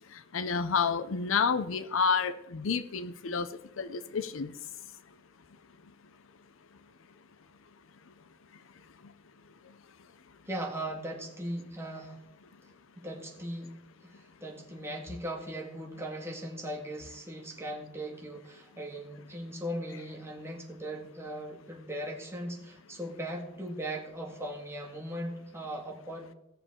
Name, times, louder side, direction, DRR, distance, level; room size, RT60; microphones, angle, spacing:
voice 1, 0.3-3.5 3.8-4.5, left 5 dB, 70° left, 12 dB, 0.6 m, -29 dB
voice 2, 10.5-12.2 13.0-13.7 14.0-26.3, right 1 dB, 15° right, 0 dB, 1.8 m, -39 dB
17.5 x 6.8 x 3.6 m, 0.86 s
head